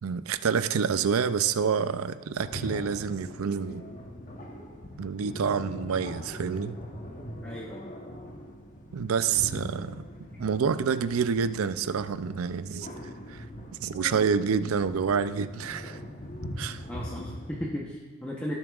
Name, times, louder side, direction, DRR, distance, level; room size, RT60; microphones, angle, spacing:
voice 1, 0.0-3.8 5.0-6.7 8.9-10.0 10.4-12.9 13.3-13.5 13.8-16.0 16.6-16.8, right 6 dB, 75° right, 12 dB, 0.5 m, -28 dB
sound 1, 2.4-17.7, equal, 35° left, 1.0 m, -41 dB
voice 2, 7.4-7.9 16.9-18.6, equal, 5° left, -4 dB, 0.9 m, -36 dB
17.0 x 7.1 x 2.4 m, 1.4 s
head